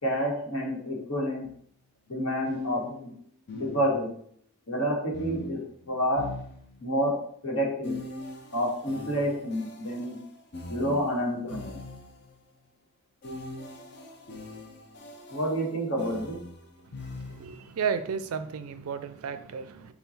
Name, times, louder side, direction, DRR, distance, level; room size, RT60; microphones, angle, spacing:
voice 1, 0.0-1.5 2.1-3.1 3.5-4.1 4.7-5.6 5.9-6.3 6.8-7.1 7.4-8.0 8.5-10.2 10.7-11.8 15.3-16.3, equal, 70° left, -2 dB, 1.5 m, -28 dB
sound 1, 1.4-1.6 2.4-4.3 5.1-7.1 7.8-12.4 13.2-17.7, left 2 dB, 50° left, 0.6 m, -42 dB
voice 2, 17.4-19.9, right 6 dB, 85° right, 11 dB, 0.4 m, -33 dB
5.5 x 2.3 x 4.2 m, 0.64 s
head